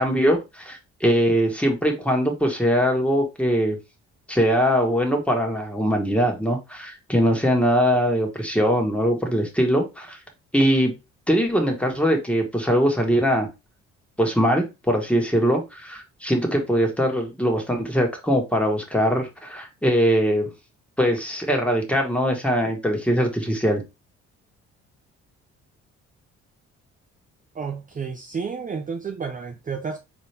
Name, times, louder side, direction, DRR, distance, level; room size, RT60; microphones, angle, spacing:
voice 1, 0.0-3.8 4.3-10.2 10.5-11.0 11.3-13.5 14.2-20.5 21.0-23.8, equal, 5° left, 1.6 m, -21 dB
voice 2, 27.5-30.0, right 5 dB, 30° right, 0.6 m, -31 dB
4.0 x 3.0 x 3.4 m
supercardioid pair, 70°, 29 cm